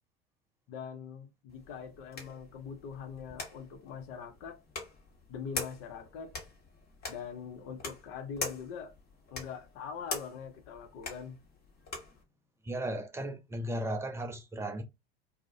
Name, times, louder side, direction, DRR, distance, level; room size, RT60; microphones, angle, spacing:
voice 1, 0.7-4.6 5.3-6.3 7.1-8.9 9.3-11.4, left 6 dB, 50° left, 0.7 m, -43 dB
sound 1, 1.5-12.2, left 3 dB, 30° left, 1.1 m, -44 dB
voice 2, 12.6-14.8, right 1 dB, 10° right, 0.4 m, -35 dB
2.4 x 2.0 x 2.7 m
hypercardioid pair, 85°, 31 cm